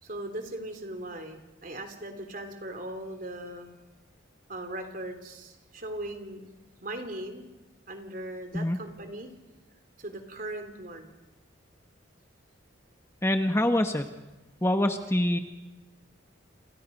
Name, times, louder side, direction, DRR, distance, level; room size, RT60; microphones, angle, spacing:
voice 1, 0.0-3.7 4.5-6.5 6.8-7.5 7.9-9.3 10.0-11.2, right 1 dB, 45° right, 6 dB, 3.4 m, -39 dB
voice 2, 13.2-14.1 14.6-15.4, left 1 dB, 15° left, 6 dB, 1.2 m, -25 dB
29.0 x 28.5 x 5.4 m, 1.1 s
head